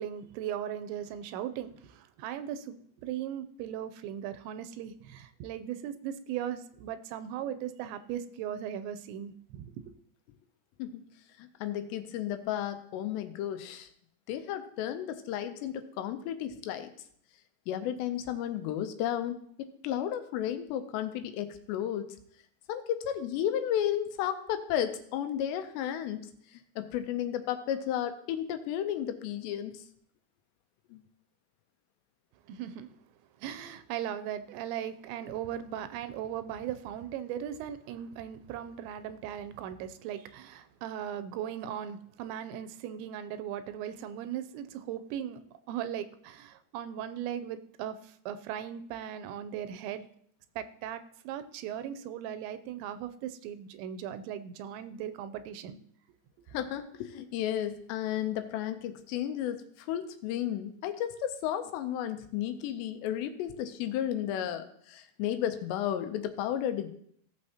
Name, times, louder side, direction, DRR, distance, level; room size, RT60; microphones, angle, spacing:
voice 1, 0.0-9.7 32.5-32.9 33.4-45.4 45.7-50.0 50.6-55.8, right 10 dB, 85° right, 11 dB, 2.8 m, -38 dB
voice 2, 11.4-13.9 14.3-16.9 17.7-22.1 22.7-29.8 30.9-31.0 56.5-66.9, left 10 dB, 80° left, 8 dB, 2.8 m, -33 dB
17.0 x 6.4 x 2.8 m, 0.64 s
omnidirectional pair, 5.1 m